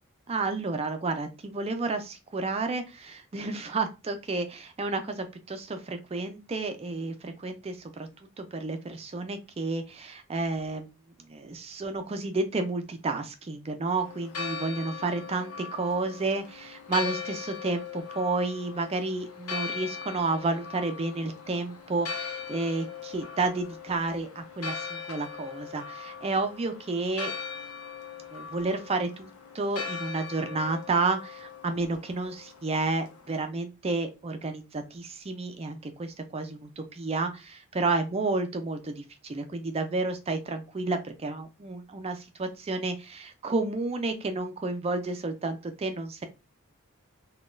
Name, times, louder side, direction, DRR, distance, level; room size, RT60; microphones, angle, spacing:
voice 1, 0.3-8.1 8.4-10.9 11.3-27.3 28.3-46.2, right 3 dB, 30° right, 7 dB, 0.4 m, -31 dB
Church bell, 14.0-33.4, left 6 dB, 90° left, 0.7 m, -40 dB
3.6 x 2.3 x 2.4 m, 0.27 s
head